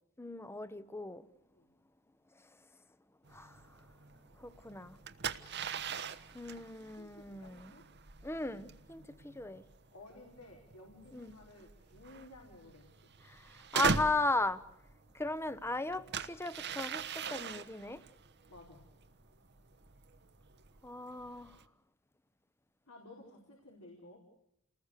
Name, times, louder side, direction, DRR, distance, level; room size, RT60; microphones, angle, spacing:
voice 1, 0.2-1.2 3.3-3.6 4.4-5.0 6.3-7.7 8.2-9.6 11.1-11.4 13.3-13.4 13.7-14.6 15.1-18.0 20.8-21.6, left 2 dB, 10° left, 1.0 m, -36 dB
sound 1, 3.2-21.6, right 5 dB, 50° right, 1.2 m, -42 dB
voice 2, 7.0-7.9 9.9-13.1 18.5-18.9 22.8-24.2, left 2 dB, 85° left, 5.0 m, -55 dB
29.5 x 20.0 x 6.7 m
head